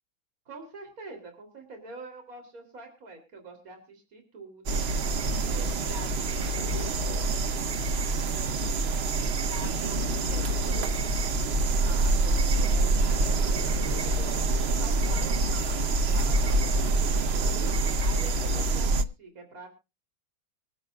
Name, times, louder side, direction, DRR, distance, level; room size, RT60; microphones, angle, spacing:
voice 1, 0.5-4.8 5.4-7.4 8.1-13.9 14.2-17.4 17.9-19.7, right 3 dB, 40° right, 3 dB, 3.7 m, -46 dB
sound 1, 4.7-19.0, right 2 dB, 80° right, 0.5 m, -26 dB
26.0 x 8.7 x 2.4 m, 0.28 s
omnidirectional pair, 2.2 m